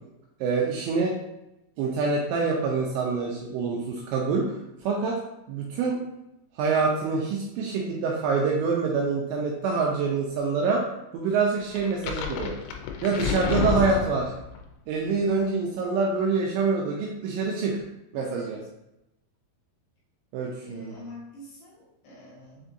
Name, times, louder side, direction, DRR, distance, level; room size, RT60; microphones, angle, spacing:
voice 1, 0.4-1.1 1.8-4.5 4.8-5.2 5.5-6.0 6.6-10.8 11.1-12.5 13.0-14.3 14.9-17.8 18.1-18.6 20.3-20.9, right 4 dB, 85° right, -2 dB, 2.6 m, -26 dB
sound 1, 11.8-14.6, left 6 dB, 90° left, 3.2 m, -29 dB
voice 2, 18.2-18.5 20.6-22.6, equal, 75° left, -6 dB, 2.7 m, -44 dB
7.2 x 2.6 x 2.6 m, 0.89 s
omnidirectional pair, 5.6 m